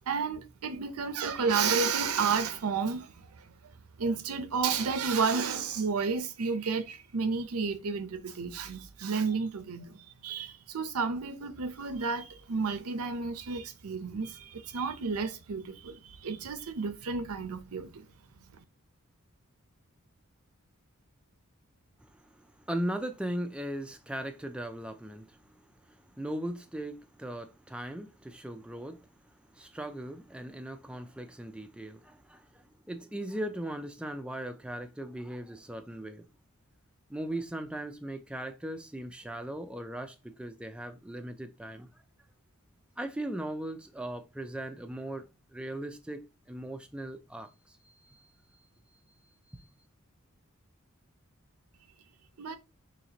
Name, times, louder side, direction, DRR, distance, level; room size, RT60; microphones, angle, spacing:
voice 1, 0.1-3.5 4.0-18.1 52.4-52.6, right 5 dB, 80° right, 0.6 m, -31 dB
voice 2, 22.0-25.4 25.9-29.1 29.5-36.2 37.1-41.9 43.0-48.7 49.5-49.7, right 1 dB, 5° right, 0.4 m, -39 dB
4.1 x 2.9 x 2.9 m
head